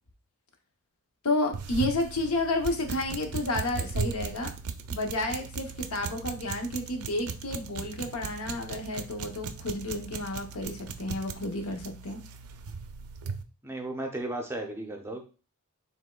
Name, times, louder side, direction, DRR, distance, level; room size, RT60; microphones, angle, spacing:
voice 1, 1.2-4.5 4.9-12.2, left 2 dB, 80° left, 4 dB, 0.8 m, -31 dB
sound 1, 1.5-13.4, right 5 dB, 75° right, 0.4 m, -38 dB
voice 2, 13.6-15.2, right 1 dB, 10° right, 3 dB, 0.5 m, -35 dB
5.2 x 3.5 x 2.3 m, 0.35 s
head